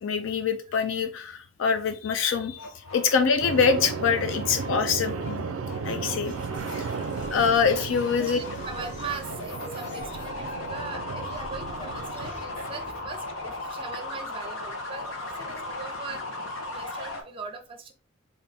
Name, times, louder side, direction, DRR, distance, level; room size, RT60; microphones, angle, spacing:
voice 1, 0.0-5.5 5.9-6.3 6.8-6.9 7.3-8.4, left 6 dB, 65° left, 8 dB, 0.4 m, -25 dB
sound 1, 2.3-17.2, left 2 dB, 90° left, 0.8 m, -38 dB
sound 2, 3.4-12.3, right 5 dB, 80° right, 0.4 m, -35 dB
sound 3, 6.2-14.4, equal, 35° left, 1.1 m, -44 dB
voice 2, 8.2-16.2 16.6-17.9, right 4 dB, 25° right, 6 dB, 0.6 m, -40 dB
3.9 x 2.5 x 3.4 m, 0.37 s
head